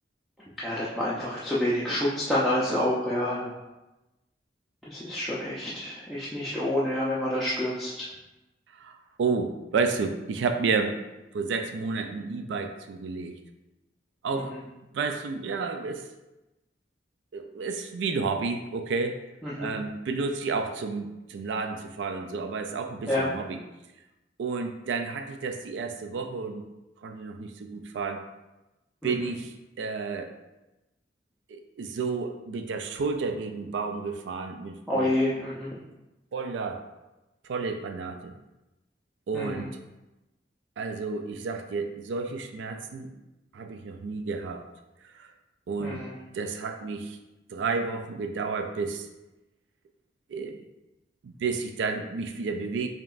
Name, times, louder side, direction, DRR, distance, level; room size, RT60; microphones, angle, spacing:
voice 1, 0.6-3.5 4.9-8.1 19.4-19.7 23.1-23.3 29.0-29.1 34.9-35.7 39.3-39.7 45.8-46.1, left 1 dB, ahead, -10 dB, 0.5 m, -28 dB
voice 2, 8.7-11.0 11.3-13.4 14.2-14.5 14.9-16.1 17.3-19.2 19.6-23.6 24.4-26.7 27.0-28.2 29.0-30.4 31.5-35.1 36.3-36.8 37.4-38.3 39.3-39.8 40.8-43.1 43.5-44.6 45.1-45.3 45.7-46.0 46.3-47.2 47.5-49.1 50.3-50.6 51.2-52.9, right 4 dB, 90° right, 6 dB, 0.3 m, -31 dB
5.1 x 2.9 x 2.5 m, 1.0 s
head